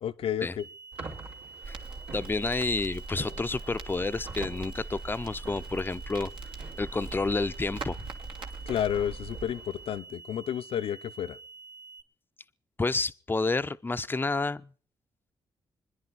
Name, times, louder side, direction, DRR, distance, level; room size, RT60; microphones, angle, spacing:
voice 1, 0.0-0.7 8.7-11.4, left 9 dB, 80° left, 11 dB, 0.9 m, -31 dB
sound 1, 0.6-12.0, right 4 dB, 40° right, 2.0 m, -48 dB
sound 2, 0.9-10.0, right 4 dB, 80° right, 4.4 m, -47 dB
Crackle, 1.6-9.5, right 3 dB, 60° right, 2.0 m, -41 dB
voice 2, 2.1-6.3 6.8-8.0 12.8-14.7, left 3 dB, 20° left, 12 dB, 0.7 m, -30 dB
26.0 x 10.5 x 4.1 m, 0.42 s
cardioid pair, 70°, 10 cm